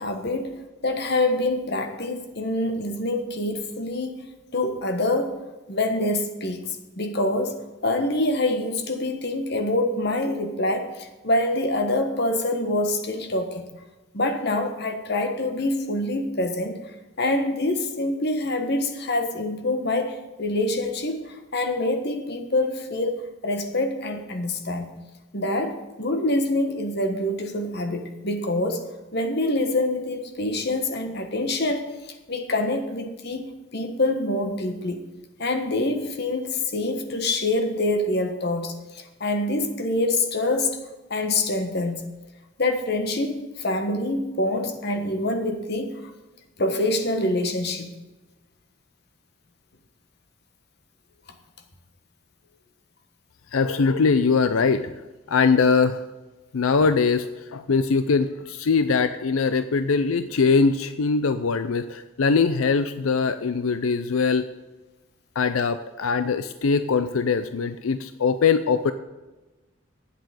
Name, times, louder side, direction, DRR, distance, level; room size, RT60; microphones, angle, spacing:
voice 1, 0.0-4.2 4.5-5.3 5.7-13.6 14.1-16.8 17.2-25.0 25.3-28.8 29.1-31.9 32.3-35.0 35.4-40.7 41.1-42.1 42.6-46.1 46.6-47.9, left 2 dB, 50° left, 6 dB, 1.4 m, -26 dB
voice 2, 53.5-54.8 55.3-56.0 56.5-64.5 65.4-68.9, left 5 dB, 85° left, 11 dB, 0.5 m, -22 dB
9.1 x 7.8 x 9.0 m, 1.1 s
head